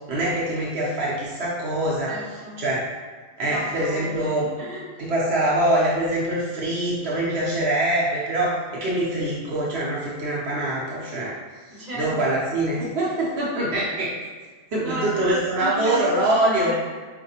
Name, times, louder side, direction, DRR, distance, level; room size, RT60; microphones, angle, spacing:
voice 1, 0.1-2.1 2.6-2.8 3.4-4.5 5.0-11.3 11.7-14.1 14.7-16.7, right 1 dB, 80° right, -6 dB, 0.9 m, -24 dB
voice 2, 2.1-2.6 3.5-4.3 4.6-5.1 11.7-12.3 14.8-16.7, equal, 45° right, -7 dB, 1.2 m, -34 dB
4.6 x 2.5 x 2.7 m, 1.5 s
omnidirectional pair, 1.1 m